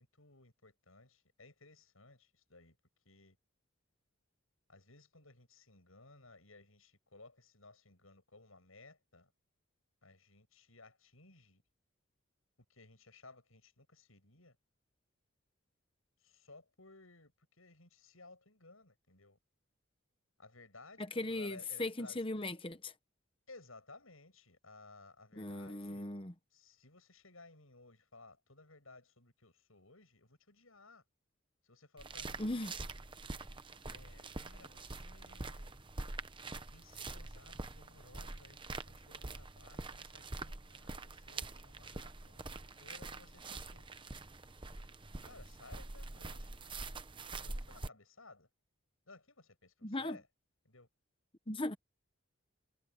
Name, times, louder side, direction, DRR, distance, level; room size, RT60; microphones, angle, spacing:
voice 1, 0.0-2.8 3.0-3.4 4.7-9.3 10.0-11.6 12.7-14.6 16.2-19.4 20.4-22.3 23.5-26.1 26.5-31.0 31.6-32.6 33.9-35.8 36.7-43.9 45.2-46.5 47.4-48.5 49.1-50.3 50.6-50.9, left 3 dB, 75° left, 7.8 m, -59 dB
voice 2, 21.2-22.9 25.4-26.3 32.4-32.7 49.8-50.2 51.5-51.8, left 2 dB, 25° left, 1.1 m, -38 dB
sound 1, 32.0-47.9, right 3 dB, 25° right, 0.9 m, -45 dB
head